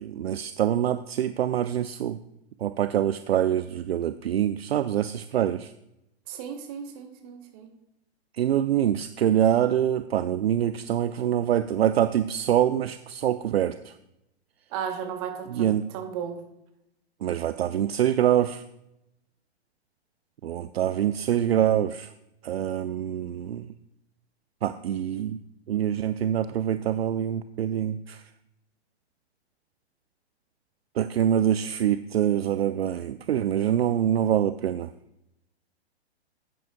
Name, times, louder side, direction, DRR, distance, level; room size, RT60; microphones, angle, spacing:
voice 1, 0.0-2.2 2.6-5.7 8.3-13.9 15.5-15.8 17.2-18.6 20.4-22.1 22.4-23.7 24.6-25.4 25.7-28.2 31.0-34.9, right 10 dB, 65° right, 11 dB, 0.4 m, -25 dB
voice 2, 6.3-7.7 14.7-16.4, right 8 dB, 35° right, 4 dB, 1.3 m, -35 dB
10.5 x 9.1 x 2.4 m, 0.84 s
figure-of-eight pair, 115°, 33 cm